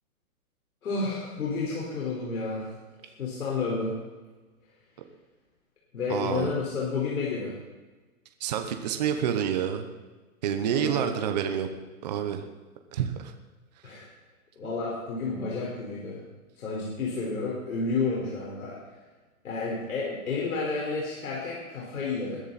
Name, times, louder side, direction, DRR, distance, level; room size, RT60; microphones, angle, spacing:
voice 1, 0.8-2.7 3.2-4.0 5.9-7.6 10.7-11.1 13.8-14.1 14.6-16.2 16.6-18.8 19.4-22.4, left 4 dB, 75° left, -5 dB, 4.8 m, -31 dB
voice 2, 6.1-6.5 8.4-9.9 10.4-11.7 12.0-12.4 12.9-13.3, right 9 dB, 30° right, 6 dB, 0.9 m, -28 dB
21.0 x 10.5 x 4.2 m, 1.2 s
hypercardioid pair, 170°, 43 cm